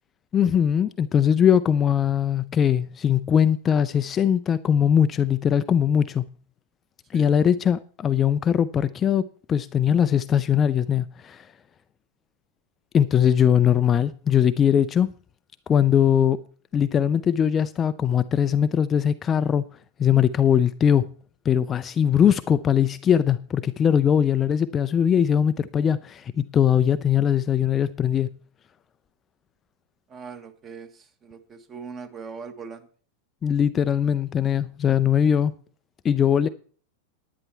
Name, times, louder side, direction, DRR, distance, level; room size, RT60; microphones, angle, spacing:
voice 1, 0.3-6.2 7.1-11.5 12.9-15.1 15.7-16.4 16.7-19.6 20.0-21.1 21.5-28.3 33.4-35.5 36.0-36.5, left 8 dB, 25° left, 0.4 m, -21 dB
voice 2, 30.1-32.9, right 5 dB, 25° right, 1.4 m, -40 dB
11.0 x 9.6 x 4.5 m
figure-of-eight pair, 90°, 0 cm